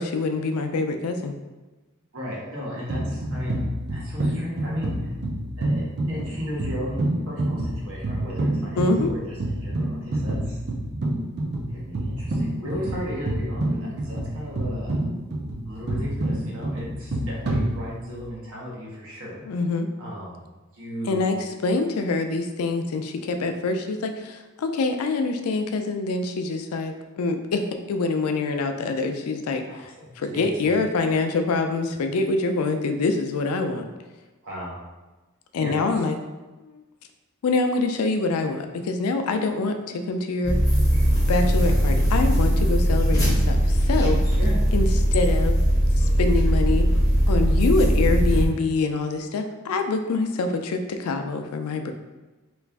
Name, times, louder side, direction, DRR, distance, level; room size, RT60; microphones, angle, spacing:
voice 1, 0.0-1.4 8.8-9.1 19.5-19.9 21.0-33.9 35.5-36.2 36.6-36.8 37.4-40.6 41.3-44.2 44.7-45.6 46.0-46.9 47.3-51.9, left 3 dB, 85° left, 6 dB, 0.4 m, -25 dB
voice 2, 2.1-3.6 3.9-5.1 5.6-10.6 11.7-15.0 15.6-19.4 20.0-21.3 29.7-29.8 30.3-30.7 34.4-34.7 35.6-35.8 44.4-44.6, equal, 65° right, -5 dB, 1.0 m, -35 dB
sound 1, 2.9-18.3, right 1 dB, 50° right, 0.5 m, -28 dB
sound 2, 40.4-48.5, equal, 15° left, 0.8 m, -20 dB
3.0 x 2.4 x 3.4 m, 1.1 s
head